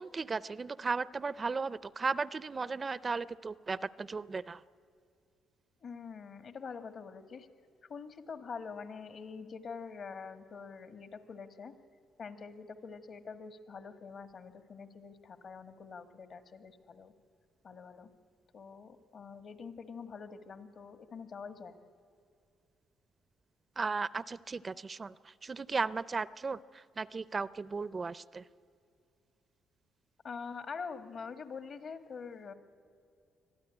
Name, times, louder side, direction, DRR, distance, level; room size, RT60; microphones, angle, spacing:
voice 1, 0.0-4.6 23.8-28.5, right 4 dB, 30° right, 18 dB, 0.4 m, -36 dB
voice 2, 5.8-7.5 7.9-11.7 12.2-17.1 17.6-18.1 18.5-21.8 30.2-32.5, left 5 dB, 55° left, 8 dB, 1.6 m, -45 dB
24.5 x 14.0 x 9.9 m, 2.4 s
cardioid pair, 90°, 0 cm